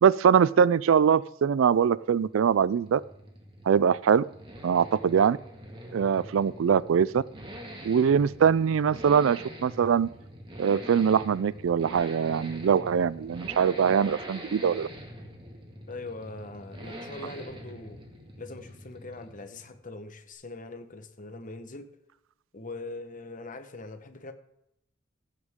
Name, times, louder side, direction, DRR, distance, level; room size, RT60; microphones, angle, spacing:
voice 1, 0.0-3.0 3.7-4.2 4.6-5.4 5.9-7.2 7.8-10.1 10.6-14.9, right 7 dB, 80° right, 21 dB, 0.4 m, -22 dB
sound 1, 1.8-19.9, equal, 25° right, 2.0 m, -44 dB
voice 2, 15.9-18.0 18.4-21.9 22.5-24.3, left 2 dB, 40° left, 8 dB, 1.2 m, -41 dB
15.5 x 9.5 x 3.7 m, 0.81 s
head